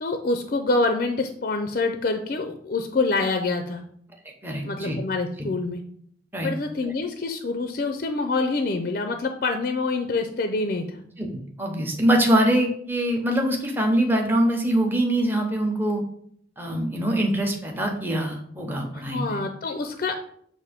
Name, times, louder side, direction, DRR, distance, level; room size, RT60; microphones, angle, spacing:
voice 1, 0.0-3.8 4.6-5.8 6.4-11.0 18.9-20.3, left 3 dB, 45° left, 6 dB, 0.4 m, -26 dB
voice 2, 4.4-5.0 5.4-5.5 6.3-6.5 6.8-6.9 11.2-16.0 16.6-19.4, right 1 dB, 10° right, 1 dB, 0.8 m, -24 dB
7.4 x 2.6 x 5.0 m, 0.65 s
head